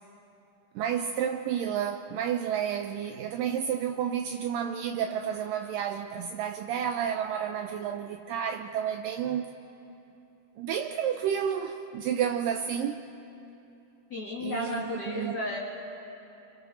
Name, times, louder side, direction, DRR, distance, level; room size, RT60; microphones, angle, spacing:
voice 1, 0.8-9.5 10.6-13.0 14.4-15.4, right 8 dB, 80° right, 2.0 m, -31 dB
voice 2, 14.1-15.6, left 1 dB, 35° left, 2.0 m, -33 dB
29.5 x 26.5 x 4.3 m
omnidirectional pair, 4.5 m